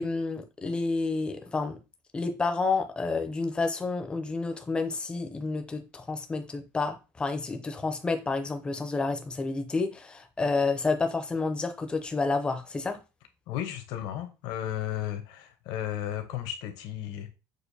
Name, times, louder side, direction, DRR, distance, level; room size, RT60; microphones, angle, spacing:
voice 1, 0.0-1.8 2.1-13.0, left 3 dB, 10° left, 0.5 m, -30 dB
voice 2, 13.5-17.3, left 11 dB, 65° left, 0.8 m, -34 dB
6.4 x 2.5 x 2.7 m
cardioid pair, 165°, 8 cm